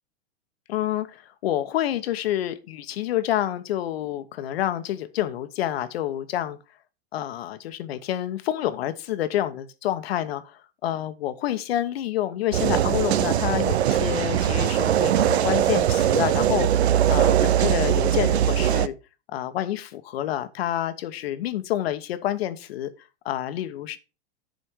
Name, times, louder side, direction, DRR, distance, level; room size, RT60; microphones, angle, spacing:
voice 1, 0.7-6.6 7.1-16.7 17.1-18.9 19.3-22.9 23.2-24.0, left 12 dB, 70° left, 1.1 m, -28 dB
sound 1, 12.5-18.9, right 10 dB, 90° right, 0.6 m, -21 dB
10.5 x 4.3 x 4.6 m
hypercardioid pair, 115°, 31 cm